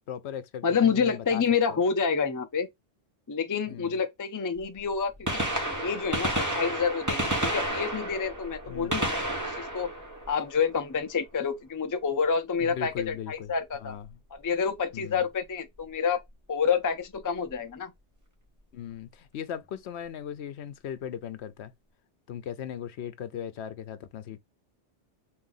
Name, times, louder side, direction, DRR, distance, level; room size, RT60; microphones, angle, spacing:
voice 1, 0.1-1.4 1.7-1.8 3.7-4.0 8.7-8.9 12.6-14.2 14.9-15.2 18.7-21.7 22.3-24.4, left 9 dB, 70° left, 0.9 m, -38 dB
voice 2, 0.6-2.7 3.3-9.2 9.5-9.9 10.3-13.9 14.3-16.2 16.5-17.9, left 6 dB, 25° left, 0.4 m, -28 dB
Gunshot gunfire, 4.6-4.7 5.1-11.0 12.9-13.1 14.1-14.2 15.8-15.9 17.2-17.3 17.5-17.6, right 1 dB, 15° right, 1.2 m, -31 dB
3.6 x 2.6 x 3.9 m
omnidirectional pair, 1.2 m